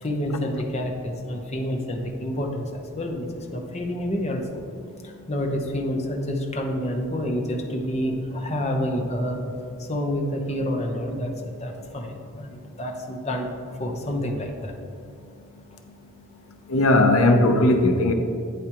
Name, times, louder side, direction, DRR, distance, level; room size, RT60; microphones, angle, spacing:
voice 1, 0.0-4.6 5.0-9.4 9.8-13.5 13.7-14.7, equal, 30° left, 2 dB, 0.8 m, -28 dB
voice 2, 16.7-18.1, left 2 dB, 85° left, 5 dB, 0.7 m, -18 dB
8.7 x 8.3 x 3.0 m, 2.4 s
head